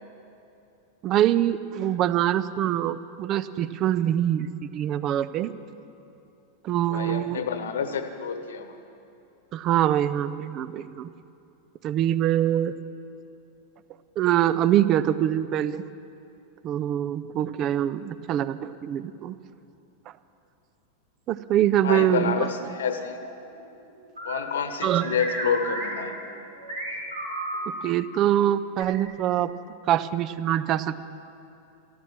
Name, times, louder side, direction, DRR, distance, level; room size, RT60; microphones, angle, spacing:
voice 1, 1.0-5.5 6.6-7.4 9.5-11.1 11.8-12.8 14.2-15.8 16.6-19.3 21.3-22.5 24.8-25.1 27.8-29.5 29.9-31.0, right 11 dB, 35° right, 15 dB, 0.5 m, -24 dB
voice 2, 6.9-8.8 21.8-23.2 24.2-26.1, left 6 dB, 65° left, 9 dB, 1.1 m, -28 dB
sound 1, 22.7-23.3 24.2-27.6 28.8-28.9, right 1 dB, 75° right, 4.6 m, -34 dB
13.5 x 13.0 x 7.4 m, 2.7 s
figure-of-eight pair, 90°, 0 cm